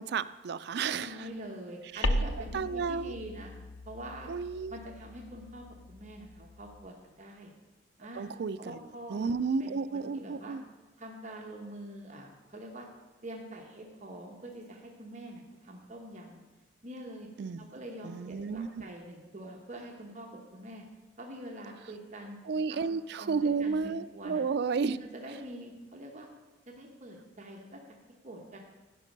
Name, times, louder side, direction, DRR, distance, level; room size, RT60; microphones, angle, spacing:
voice 1, 0.0-1.2 1.9-2.1 2.5-3.2 4.3-4.8 8.2-8.8 9.1-10.6 17.4-17.6 18.0-18.8 22.5-25.0, right 5 dB, 55° right, 13 dB, 0.3 m, -32 dB
voice 2, 0.9-3.5 3.9-4.3 4.7-7.5 8.0-8.3 8.6-9.3 9.6-10.6 11.0-12.9 13.2-16.4 16.8-17.3 17.6-20.8 21.2-22.4 22.7-22.8 23.2-24.4 24.9-26.3 26.7-27.8 28.2-28.6, right 1 dB, 40° right, 1 dB, 1.0 m, -45 dB
sound 1, 2.0-6.9, left 1 dB, 90° left, 0.6 m, -37 dB
16.0 x 5.3 x 5.3 m, 1.2 s
head